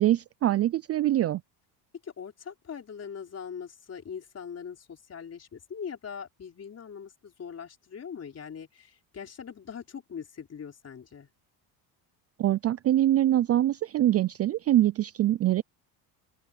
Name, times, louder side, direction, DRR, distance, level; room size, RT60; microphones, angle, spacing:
voice 1, 0.0-1.4 12.4-15.6, right 13 dB, 35° right, 0.4 m, -24 dB
voice 2, 2.0-11.3, left 7 dB, 35° left, 4.4 m, -41 dB
open air
supercardioid pair, 105°, 44 cm